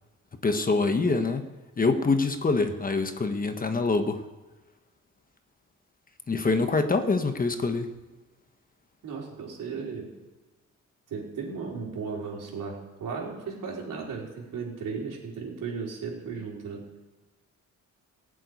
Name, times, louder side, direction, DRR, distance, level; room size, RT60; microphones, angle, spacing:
voice 1, 0.4-1.5 1.8-4.2 6.3-7.9, left 3 dB, 25° left, 7 dB, 1.2 m, -25 dB
voice 2, 9.0-10.1 11.1-16.8, right 5 dB, 85° right, -2 dB, 4.3 m, -35 dB
17.0 x 7.7 x 9.5 m, 1.2 s
cardioid pair, 130°, 31 cm